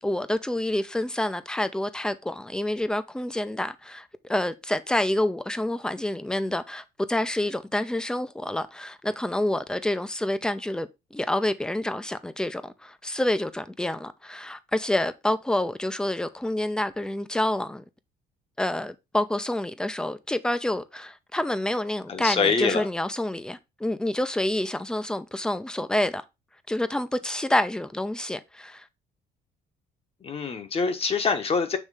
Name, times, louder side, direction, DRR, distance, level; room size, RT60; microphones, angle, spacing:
voice 1, 0.0-17.8 18.6-26.2 26.7-28.9, left 1 dB, 5° left, 0.6 m, -28 dB
voice 2, 22.1-22.9 30.2-31.8, left 4 dB, 35° left, 1.1 m, -25 dB
7.3 x 3.2 x 4.8 m
cardioid pair, 110°, 17 cm